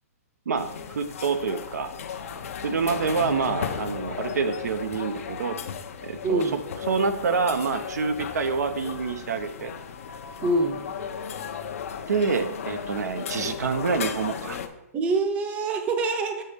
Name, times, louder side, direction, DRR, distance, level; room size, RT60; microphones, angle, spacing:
voice 1, 0.5-1.9 2.6-5.6 6.0-6.5 6.9-9.7 12.1-14.6, right 5 dB, 85° right, 8 dB, 0.7 m, -27 dB
sound 1, 0.6-14.7, left 7 dB, 60° left, 0.7 m, -35 dB
voice 2, 6.2-6.6 10.4-10.8 14.9-16.4, right 3 dB, 15° right, 6 dB, 0.7 m, -25 dB
7.7 x 4.1 x 5.0 m, 0.89 s
hypercardioid pair, 160°, 9 cm